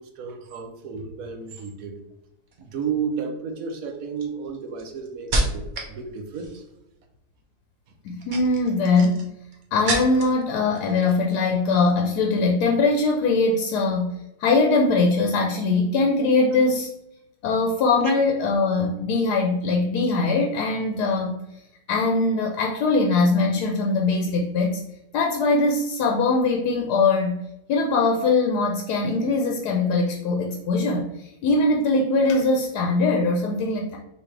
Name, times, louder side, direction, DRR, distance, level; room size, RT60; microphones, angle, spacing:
voice 1, 0.0-2.0 2.6-6.6, right 6 dB, 65° right, 4 dB, 1.0 m, -32 dB
sound 1, 2.5-2.9 3.6-6.0 6.3-6.8 8.0-10.4 10.7-11.4 11.7-11.9, right 2 dB, 45° right, 0.6 m, -30 dB
voice 2, 8.0-9.3 9.7-14.1 14.4-16.9 17.4-21.3 21.9-24.8 25.1-27.4 27.7-34.0, left 3 dB, 80° left, 1 dB, 1.1 m, -21 dB
5.3 x 2.8 x 3.2 m, 0.88 s
omnidirectional pair, 1.7 m